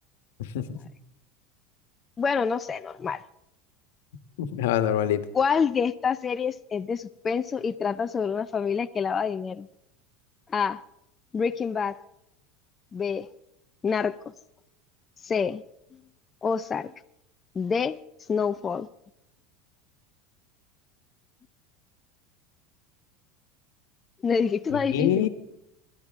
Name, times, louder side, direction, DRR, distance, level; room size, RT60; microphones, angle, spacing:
voice 1, 0.4-0.8 4.4-5.2 24.9-25.3, left 10 dB, 85° left, 1.3 m, -25 dB
voice 2, 2.2-3.2 5.3-9.7 10.5-10.8 11.3-12.0 12.9-13.3 13.8-14.2 15.2-15.6 16.4-16.9 17.6-18.0 18.3-18.9 24.2-25.3, left 6 dB, 20° left, 0.5 m, -27 dB
26.5 x 12.0 x 3.6 m
supercardioid pair, 135°, 0 cm